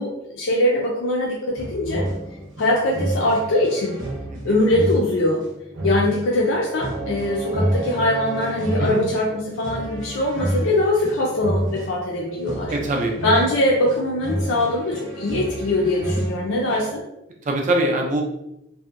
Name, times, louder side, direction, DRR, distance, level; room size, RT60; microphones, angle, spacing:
voice 1, 0.0-2.1 2.6-4.0 4.4-5.4 5.8-12.7 13.2-17.0, left 1 dB, 80° left, -3 dB, 0.4 m, -22 dB
sound 1, 1.6-17.0, right 1 dB, 70° right, 0.7 m, -29 dB
voice 2, 12.7-13.1 17.5-18.2, right 1 dB, 40° right, 2 dB, 0.4 m, -22 dB
2.6 x 2.1 x 2.5 m, 0.85 s
head